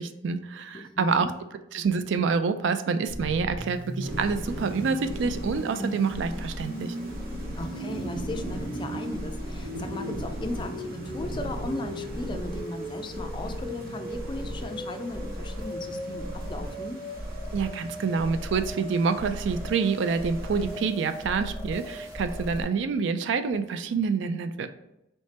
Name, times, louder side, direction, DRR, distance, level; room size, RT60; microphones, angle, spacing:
voice 1, 0.0-1.3 1.7-7.0 17.5-24.7, right 5 dB, 70° right, 10 dB, 0.4 m, -27 dB
voice 2, 0.7-1.3 7.6-17.0, left 2 dB, 25° left, 6 dB, 0.4 m, -37 dB
sound 1, 3.1-22.6, equal, 15° right, 1.1 m, -36 dB
Thunder / Rain, 4.0-20.8, right 2 dB, 50° right, 0.8 m, -40 dB
3.3 x 3.1 x 4.1 m, 0.86 s
head